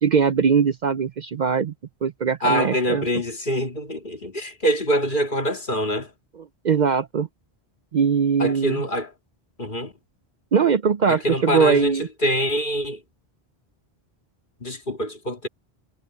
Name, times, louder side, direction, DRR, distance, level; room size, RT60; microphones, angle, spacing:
voice 1, 0.0-1.7 2.0-3.0 6.6-7.3 7.9-8.8 10.5-12.1, right 6 dB, 55° right, 0.6 m, -21 dB
voice 2, 2.4-6.1 8.4-9.1 9.6-9.9 11.1-13.0 14.6-15.5, equal, 50° left, 2.5 m, -25 dB
omnidirectional pair, 1.1 m